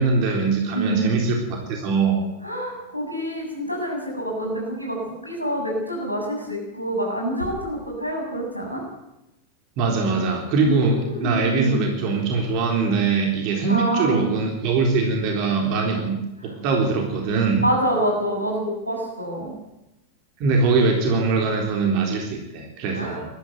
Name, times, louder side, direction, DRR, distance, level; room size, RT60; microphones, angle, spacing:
voice 1, 0.0-2.2 9.8-17.6 20.4-23.3, right 4 dB, 40° right, 3 dB, 3.8 m, -22 dB
voice 2, 0.7-1.2 2.4-8.8 10.6-11.7 13.7-14.3 17.6-19.5 22.9-23.2, equal, 90° right, -1 dB, 7.6 m, -27 dB
20.5 x 13.5 x 9.4 m, 0.91 s
figure-of-eight pair, 90°, 0 cm